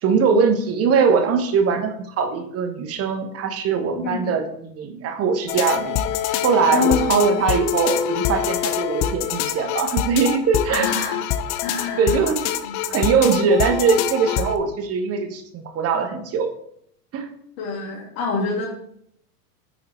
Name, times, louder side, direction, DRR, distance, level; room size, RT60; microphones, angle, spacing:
voice 1, 0.0-6.0 6.4-10.9 12.0-12.4 12.9-16.5 17.1-17.3, right 5 dB, 30° right, 7 dB, 1.2 m, -21 dB
sound 1, 5.5-14.6, left 10 dB, 40° left, 0.6 m, -25 dB
voice 2, 6.7-7.3 10.7-11.2 11.6-12.2 12.6-12.7 17.6-18.7, left 5 dB, 60° left, -1 dB, 2.6 m, -26 dB
9.4 x 3.9 x 4.4 m, 0.70 s
hypercardioid pair, 115°, 47 cm